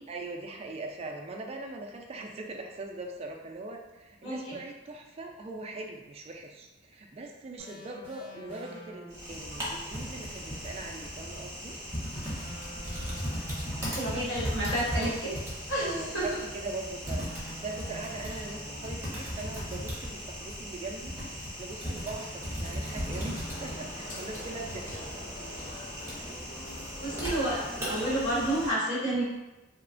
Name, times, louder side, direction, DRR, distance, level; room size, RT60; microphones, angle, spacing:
voice 1, 0.1-11.7 15.8-25.0, right 2 dB, 35° right, 2 dB, 0.3 m, -41 dB
voice 2, 4.2-4.6 13.8-15.3 15.7-16.3 27.0-29.2, right 1 dB, 75° left, -8 dB, 1.2 m, -30 dB
sound 1, 7.6-9.4 12.4-14.3 17.2-19.1 22.0-24.2, equal, 15° left, 1.0 m, -47 dB
Typing, 9.1-28.7, equal, 15° right, 0.7 m, -37 dB
sound 2, 23.0-28.2, left 1 dB, 40° left, 0.5 m, -44 dB
3.0 x 2.1 x 2.5 m, 1.1 s
head